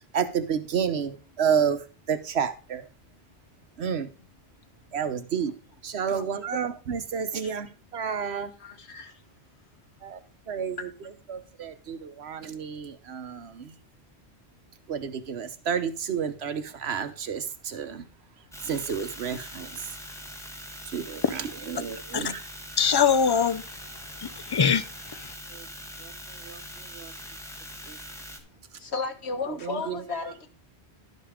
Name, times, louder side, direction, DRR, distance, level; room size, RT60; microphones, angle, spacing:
voice 1, 0.1-2.8 3.8-4.1 4.9-5.5 5.8-7.7 7.9-8.5 10.0-10.2 10.5-10.9 11.3-13.7 14.9-18.0 18.6-19.8 20.9-22.4 25.5-25.7 26.0-26.1 26.4-26.6 26.9-27.1 27.9-28.0 29.6-30.0, right 7 dB, 80° right, 1.2 m, -30 dB
voice 2, 6.1-6.6 7.4-7.5 8.6-9.2 28.8-30.5, left 4 dB, 90° left, 1.6 m, -34 dB
sound 1, 18.5-28.4, equal, 5° left, 1.2 m, -42 dB
voice 3, 22.8-23.6 24.2-25.3, left 7 dB, 40° left, 0.3 m, -23 dB
11.5 x 5.3 x 5.0 m
omnidirectional pair, 1.1 m